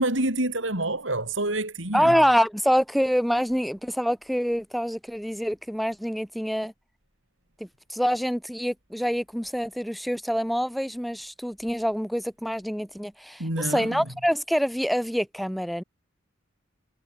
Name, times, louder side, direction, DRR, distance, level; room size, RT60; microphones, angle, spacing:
voice 1, 0.0-2.2 13.4-14.0, right 1 dB, 75° right, 6.4 m, -27 dB
voice 2, 1.9-6.7 7.6-15.8, equal, ahead, 4.8 m, -26 dB
head